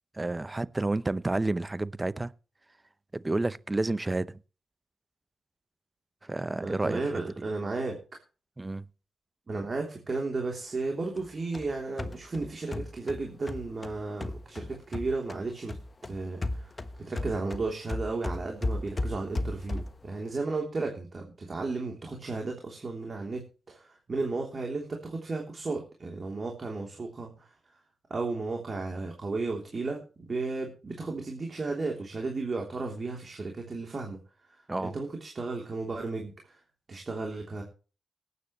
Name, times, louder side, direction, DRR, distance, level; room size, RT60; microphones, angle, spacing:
voice 1, 0.1-2.3 3.1-4.3 6.2-7.2 8.6-8.9 34.7-34.9, right 2 dB, 25° right, 0.7 m, -30 dB
voice 2, 6.6-8.0 9.5-15.7 16.1-16.7 17.1-27.5 28.1-34.2 34.8-36.6 36.9-37.6, right 3 dB, 45° right, 3.2 m, -34 dB
sound 1, 11.2-15.4 15.7-20.1, left 2 dB, 35° left, 1.3 m, -35 dB
19.0 x 9.4 x 3.1 m
cardioid pair, 60°, 0 cm